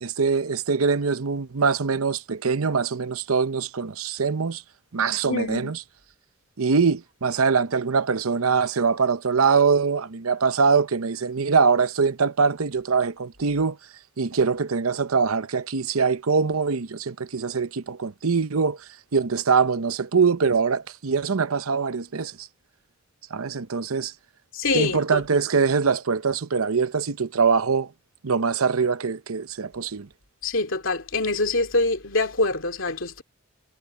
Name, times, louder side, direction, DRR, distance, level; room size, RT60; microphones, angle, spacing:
voice 1, 0.0-4.6 4.9-5.8 6.6-13.8 14.2-18.8 19.1-22.5 23.3-24.1 24.7-27.9 28.2-30.1, right 5 dB, 90° right, 0.8 m, -23 dB
voice 2, 5.1-5.7 24.5-25.2 30.4-33.2, left 2 dB, 65° left, 2.7 m, -25 dB
head